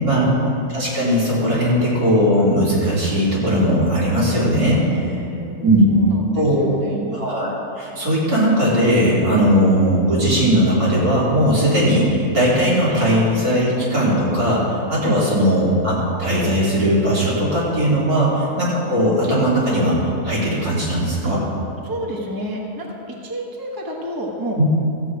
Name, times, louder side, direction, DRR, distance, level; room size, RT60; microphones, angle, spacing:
voice 1, 0.0-0.6 5.0-7.1 15.0-15.2 18.1-18.2 21.2-21.3 21.8-24.6, right 1 dB, 15° right, -1 dB, 1.2 m, -30 dB
voice 2, 0.7-5.1 5.6-5.8 6.3-6.6 7.1-7.5 7.8-20.0 20.2-21.4 24.6-24.7, equal, 80° right, -8 dB, 4.0 m, -18 dB
14.5 x 8.1 x 4.8 m, 2.7 s
omnidirectional pair, 1.5 m